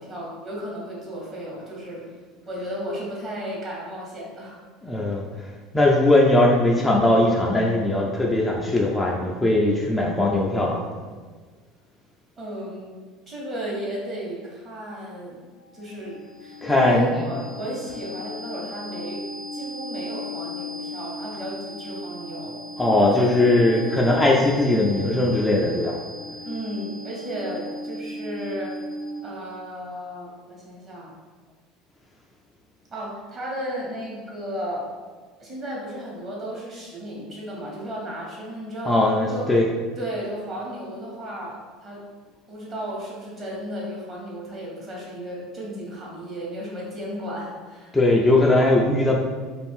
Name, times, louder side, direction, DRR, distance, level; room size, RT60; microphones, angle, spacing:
voice 1, 0.0-2.0 2.5-4.6 12.4-15.4 15.7-19.2 19.5-22.6 23.1-23.4 26.4-28.7 29.2-31.1 32.9-34.9 35.4-39.0 39.3-39.6 40.0-42.0 42.5-48.0, equal, 35° right, -4 dB, 1.2 m, -34 dB
voice 2, 4.8-5.3 5.7-10.8 16.6-17.1 22.8-26.0 38.8-39.7 47.9-49.2, left 2 dB, 15° left, -2 dB, 0.4 m, -19 dB
sound 1, 15.6-29.5, left 1 dB, 80° left, 0.6 m, -37 dB
2.6 x 2.4 x 3.5 m, 1.5 s
hypercardioid pair, 85°, 0 cm